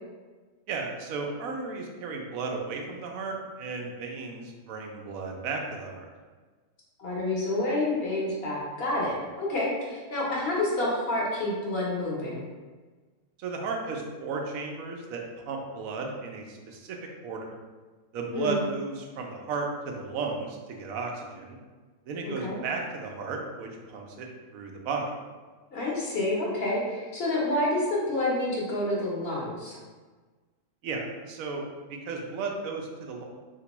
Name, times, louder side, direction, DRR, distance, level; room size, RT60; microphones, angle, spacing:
voice 1, 0.7-6.1 13.4-17.6 18.1-21.6 22.1-25.1 30.8-31.6 31.9-33.2, right 4 dB, 90° right, 1 dB, 1.0 m, -34 dB
voice 2, 7.0-12.4 18.3-18.6 22.2-22.6 25.7-29.8, left 1 dB, 50° left, -4 dB, 0.9 m, -28 dB
3.4 x 2.9 x 2.9 m, 1.4 s
omnidirectional pair, 1.4 m